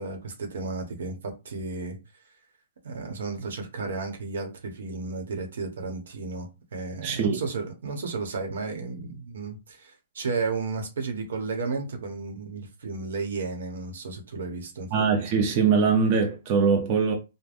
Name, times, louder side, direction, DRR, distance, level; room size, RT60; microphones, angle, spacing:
voice 1, 0.0-2.0 2.8-14.9, right 4 dB, 80° right, 0.9 m, -33 dB
voice 2, 7.0-7.4 14.9-17.1, right 5 dB, 40° right, 0.6 m, -22 dB
3.4 x 2.0 x 2.5 m
hypercardioid pair, 150°, 0 cm